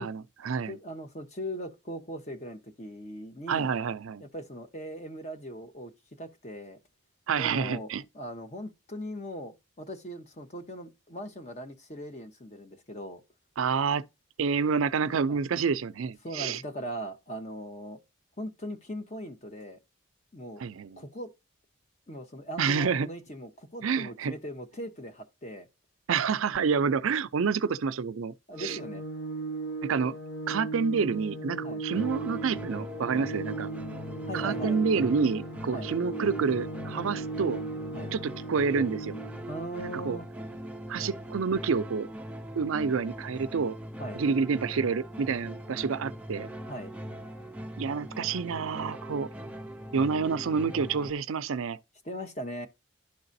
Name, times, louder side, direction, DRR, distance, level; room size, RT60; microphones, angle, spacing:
voice 1, 0.0-0.8 3.5-4.2 7.3-8.0 13.6-14.0 14.4-16.6 20.6-21.0 22.6-23.1 23.8-24.3 26.1-28.8 29.8-30.1 30.5-33.7 34.3-37.6 38.1-39.1 39.8-40.2 40.9-42.1 42.6-43.8 44.2-46.5 47.8-49.3 49.9-51.8, right 5 dB, 75° right, 0.5 m, -28 dB
voice 2, 0.7-3.7 4.2-5.9 6.2-6.8 7.3-7.9 8.1-13.2 15.3-15.4 16.2-18.0 18.4-19.8 20.3-20.6 21.0-21.3 22.1-25.7 28.5-29.0 31.6-31.8 34.3-34.8 35.7-35.9 37.9-38.1 39.5-40.3 44.0-44.2 46.7-46.9 52.0-52.7, equal, 35° left, 1.0 m, -39 dB
Organ, 28.5-39.5, right 3 dB, 55° left, 1.6 m, -37 dB
sound 1, 31.9-51.1, right 1 dB, 5° right, 0.5 m, -41 dB
11.5 x 3.9 x 2.6 m
head